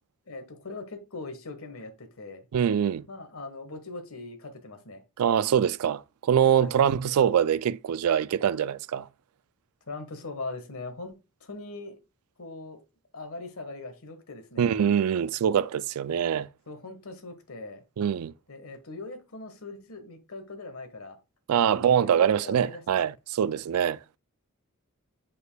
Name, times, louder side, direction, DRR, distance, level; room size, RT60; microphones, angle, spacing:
voice 1, 0.3-2.4 3.1-5.0 6.6-6.7 9.9-12.0 12.4-12.8 13.1-14.8 16.7-17.8 18.5-21.2 21.5-23.0, left 3 dB, 75° left, 1.4 m, -41 dB
voice 2, 2.5-3.0 5.2-9.1 14.6-16.5 18.0-18.3 21.5-24.0, right 8 dB, 85° right, 0.3 m, -24 dB
8.0 x 5.3 x 2.3 m
head